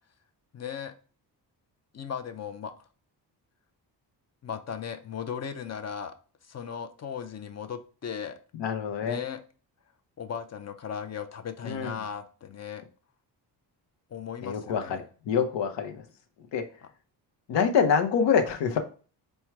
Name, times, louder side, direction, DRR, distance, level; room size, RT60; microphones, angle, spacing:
voice 1, 0.5-0.9 1.9-2.7 4.4-6.2 6.4-8.4 9.0-9.4 10.2-12.8 14.1-15.0, left 7 dB, 40° left, 9 dB, 0.5 m, -37 dB
voice 2, 8.6-9.2 11.6-12.0 14.4-16.0 16.5-16.6 17.5-18.8, left 6 dB, 80° left, 4 dB, 0.9 m, -26 dB
4.4 x 2.2 x 4.5 m, 0.38 s
cardioid pair, 95°, 42 cm